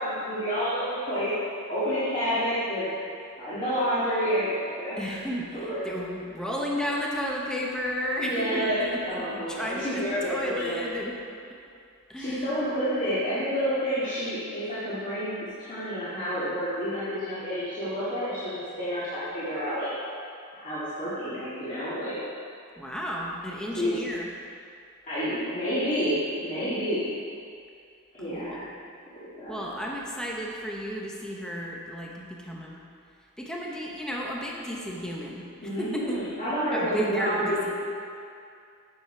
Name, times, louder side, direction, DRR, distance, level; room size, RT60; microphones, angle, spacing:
voice 1, 0.0-1.3 1.7-2.9 3.4-5.2 5.5-5.8 8.2-10.9 12.2-19.9 20.5-22.2 23.7-24.0 25.1-27.1 28.1-28.7 29.4-29.6 35.6-37.7, equal, 35° left, -13 dB, 2.0 m, -29 dB
voice 2, 5.0-9.0 9.3-11.1 12.1-12.6 22.8-24.3 28.3-28.7 29.5-32.8 33.4-35.5 35.8-36.3 36.7-37.6, equal, 5° left, -3 dB, 0.8 m, -33 dB
9.0 x 6.6 x 4.4 m, 2.4 s
head